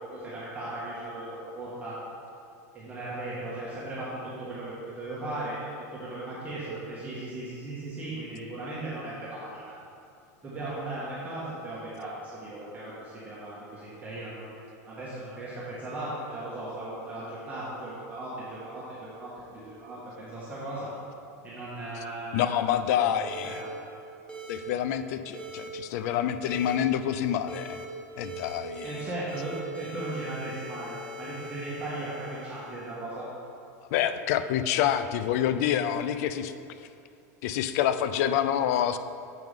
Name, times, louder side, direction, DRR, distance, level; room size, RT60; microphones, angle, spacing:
voice 1, 0.0-2.0 2.7-5.6 6.0-9.7 10.4-14.5 14.8-20.9 21.4-22.6 23.0-23.1 23.4-23.7 28.8-33.3, right 2 dB, 20° right, -10 dB, 1.7 m, -37 dB
voice 2, 22.3-23.6 24.5-27.8 28.2-29.0 33.9-36.5 37.4-39.0, left 10 dB, 65° left, 12 dB, 0.4 m, -27 dB
sound 1, 23.3-23.6 24.3-24.6 25.3-25.7 26.4-26.8 27.5-27.9 28.2-29.0 29.3-33.0, right 1 dB, 10° left, 1.4 m, -42 dB
7.7 x 5.9 x 3.6 m, 2.6 s
supercardioid pair, 120°, 9 cm